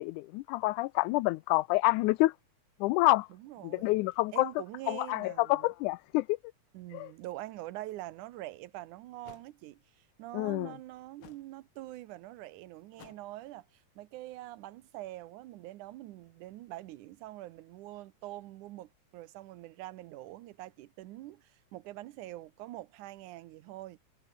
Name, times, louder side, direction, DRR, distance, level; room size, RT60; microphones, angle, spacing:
voice 1, 0.0-2.3 2.8-3.3 3.6-4.5 4.9-6.4 6.9-7.1 10.3-10.7, left 20 dB, 85° left, 2.0 m, -28 dB
voice 2, 3.3-4.0 4.3-5.7 6.7-24.0, right 16 dB, 90° right, 2.3 m, -45 dB
sound 1, 8.3-8.4 9.2-9.5 11.2-11.5 12.9-13.4, left 9 dB, 50° left, 1.9 m, -54 dB
omnidirectional pair, 3.5 m